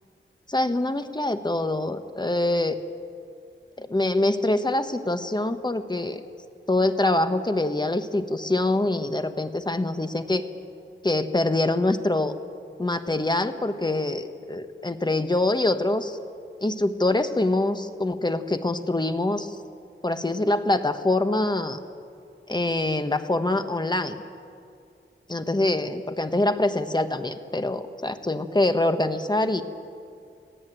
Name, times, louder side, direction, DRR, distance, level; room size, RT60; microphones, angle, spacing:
voice 1, 0.5-2.8 3.8-6.2 6.7-10.4 11.0-12.4 12.8-16.2 16.6-19.6 20.0-21.8 22.5-24.2 25.3-29.6, left 2 dB, 20° left, 9 dB, 1.2 m, -24 dB
25.5 x 16.0 x 9.2 m, 2.4 s
wide cardioid pair, 100°, 21 cm